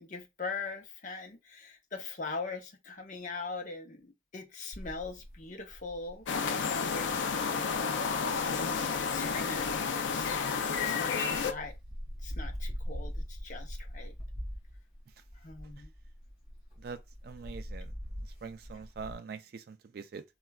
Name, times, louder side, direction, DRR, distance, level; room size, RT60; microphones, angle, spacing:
voice 1, 0.0-7.9 8.4-11.7 12.2-14.1 15.4-15.9, left 4 dB, 40° left, 0.7 m, -41 dB
sound 1, 4.7-10.7 11.2-19.2, equal, 25° right, 2.1 m, -43 dB
sound 2, 6.3-11.5, left 5 dB, 80° left, 0.4 m, -31 dB
voice 2, 16.8-17.9 18.4-20.2, right 5 dB, 55° right, 0.3 m, -43 dB
4.3 x 2.3 x 2.3 m
head